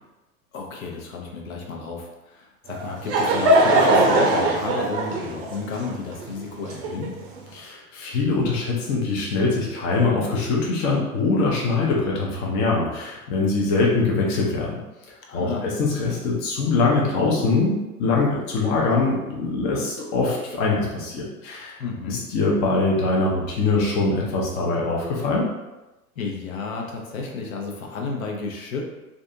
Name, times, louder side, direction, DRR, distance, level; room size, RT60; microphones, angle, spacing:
voice 1, 0.5-7.2 15.3-15.7 21.8-22.2 26.2-28.8, left 4 dB, 65° left, 0 dB, 0.7 m, -32 dB
Laughter / Crowd, 2.7-7.4, right 1 dB, 40° right, 0.5 m, -20 dB
voice 2, 7.5-14.7 15.3-21.7 22.1-25.5, left 3 dB, 25° left, -3 dB, 0.4 m, -23 dB
2.6 x 2.3 x 2.5 m, 1.0 s
hypercardioid pair, 100°, 45 cm